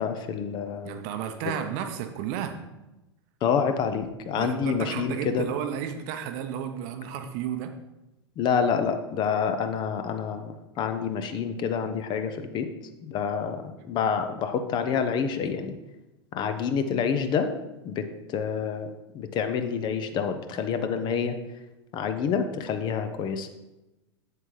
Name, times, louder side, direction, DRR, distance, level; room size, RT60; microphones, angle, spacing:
voice 1, 0.0-1.0 3.4-5.4 8.4-12.7 13.0-15.8 16.3-17.5 17.8-18.1 18.3-18.9 19.1-21.4 21.9-23.5, left 6 dB, 30° left, 8 dB, 0.7 m, -27 dB
voice 2, 0.8-2.6 4.3-7.7, right 9 dB, 45° right, 7 dB, 0.8 m, -32 dB
7.7 x 7.5 x 3.2 m, 0.99 s
figure-of-eight pair, 90°, 14 cm